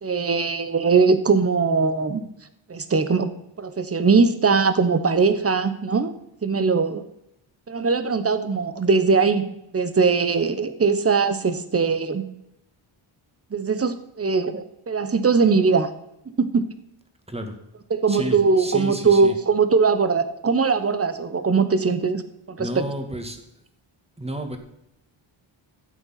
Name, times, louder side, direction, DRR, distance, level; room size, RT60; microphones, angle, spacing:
voice 1, 0.0-2.3 2.7-3.3 3.6-6.1 6.4-7.0 7.7-12.2 13.5-15.9 16.3-16.6 17.9-22.8, right 4 dB, 30° right, 11 dB, 1.2 m, -21 dB
voice 2, 18.1-19.3 22.6-23.4 24.2-24.6, equal, 10° right, 6 dB, 2.1 m, -31 dB
14.5 x 8.0 x 6.0 m, 0.82 s
cardioid pair, 90°, 49 cm